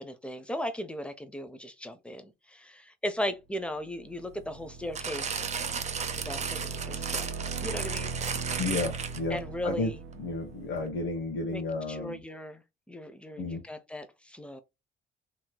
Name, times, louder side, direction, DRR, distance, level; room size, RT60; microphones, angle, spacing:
voice 1, 0.0-5.4 6.2-7.3 7.6-8.1 9.3-10.0 11.5-11.6 11.9-12.6 12.9-14.6, equal, 5° left, 0.6 m, -37 dB
sound 1, 3.8-11.6, right 5 dB, 80° right, 0.8 m, -40 dB
sound 2, 5.0-9.4 10.1-10.2, right 6 dB, 35° right, 0.6 m, -34 dB
voice 2, 8.6-9.9 10.2-12.2 13.4-13.6, left 3 dB, 75° left, 0.9 m, -32 dB
3.1 x 2.8 x 2.2 m
cardioid pair, 90°, 20 cm